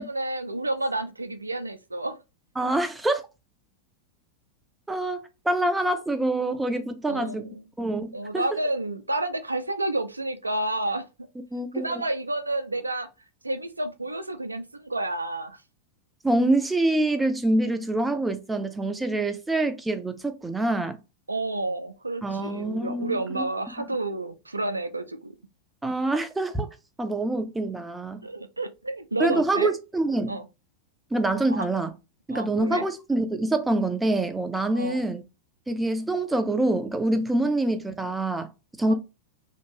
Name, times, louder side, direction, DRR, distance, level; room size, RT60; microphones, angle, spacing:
voice 1, 0.0-2.2 7.1-7.6 8.1-11.1 11.7-13.1 13.4-15.6 21.3-25.3 28.2-29.7 30.3-30.5 31.5-31.7 32.3-32.8 34.7-35.0 38.9-39.0, right 2 dB, 80° right, 0.4 m, -30 dB
voice 2, 2.6-3.2 4.9-7.5 7.8-8.4 11.5-11.8 16.2-21.0 22.2-23.4 25.8-26.7 27.0-28.2 29.2-30.4 31.1-31.9 32.3-35.2 35.7-38.5 38.8-38.9, right 2 dB, 10° right, 0.5 m, -25 dB
2.9 x 2.5 x 2.9 m
figure-of-eight pair, 90°, 0 cm